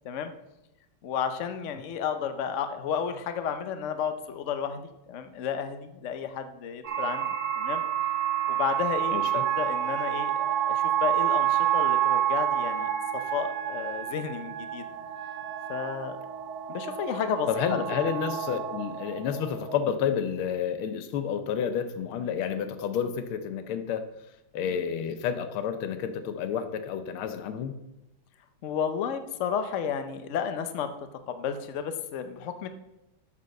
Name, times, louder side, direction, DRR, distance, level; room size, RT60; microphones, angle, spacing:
voice 1, 1.0-7.3 7.5-7.8 8.5-14.8 15.7-16.2 16.7-17.8 28.6-30.9 31.3-32.7, left 7 dB, 65° left, 9 dB, 0.7 m, -32 dB
sound 1, 6.8-19.8, right 11 dB, 50° right, 0.9 m, -29 dB
voice 2, 9.1-9.4 17.5-24.1 24.5-27.7, left 8 dB, 85° left, 10 dB, 1.6 m, -30 dB
Wind instrument woodwind instrument, 9.4-16.0, right 8 dB, 90° right, 1.5 m, -39 dB
7.2 x 6.8 x 6.4 m, 0.92 s
omnidirectional pair, 2.3 m